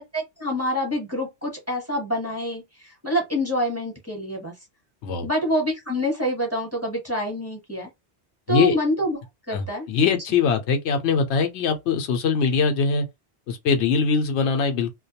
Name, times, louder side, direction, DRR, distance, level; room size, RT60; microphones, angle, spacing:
voice 1, 0.0-4.5 5.2-7.9 8.5-9.2 9.5-9.9, equal, 15° right, 0.8 m, -26 dB
voice 2, 8.5-8.8 9.5-13.1 13.5-14.9, left 5 dB, 85° left, 0.9 m, -22 dB
2.2 x 2.2 x 2.8 m
omnidirectional pair, 1.1 m